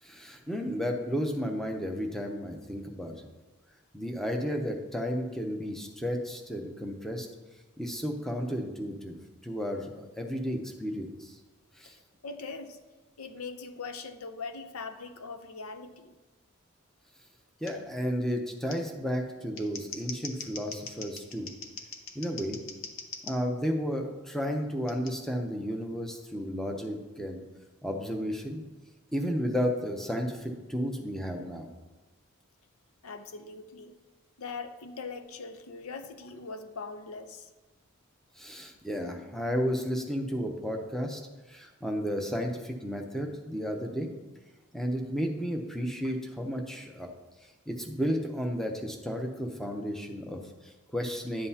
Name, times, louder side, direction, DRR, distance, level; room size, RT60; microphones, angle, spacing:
voice 1, 0.0-3.3 3.9-7.3 7.8-9.1 9.4-11.4 11.8-12.0 17.6-21.5 22.1-22.6 23.2-27.4 27.8-28.6 29.1-31.7 38.4-41.2 41.5-44.1 44.7-47.1 47.4-51.5, equal, ahead, 3 dB, 0.7 m, -33 dB
voice 2, 11.8-12.8 13.2-16.1 33.0-33.9 34.4-37.5 46.0-46.1, left 4 dB, 90° left, 9 dB, 0.7 m, -41 dB
Scissors, 17.7-17.8 18.7-18.8 19.4-23.4 24.9-25.1, left 5 dB, 65° left, 0.9 m, -42 dB
11.0 x 7.6 x 2.8 m, 1.2 s
head